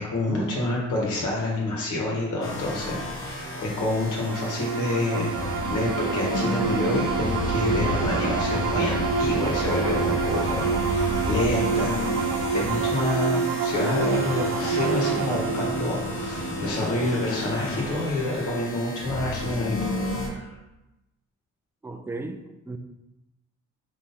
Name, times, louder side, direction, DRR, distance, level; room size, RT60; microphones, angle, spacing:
voice 1, 0.0-19.8 20.2-20.5, left 2 dB, 80° left, -3 dB, 1.5 m, -28 dB
sound 1, 2.4-20.3, left 1 dB, 45° left, 1.1 m, -31 dB
sound 2, 4.2-17.7, right 5 dB, 75° right, 0.6 m, -28 dB
voice 2, 21.8-22.8, right 2 dB, 10° right, 7 dB, 0.3 m, -34 dB
4.0 x 3.0 x 3.7 m, 0.98 s
cardioid pair, 90°, 30 cm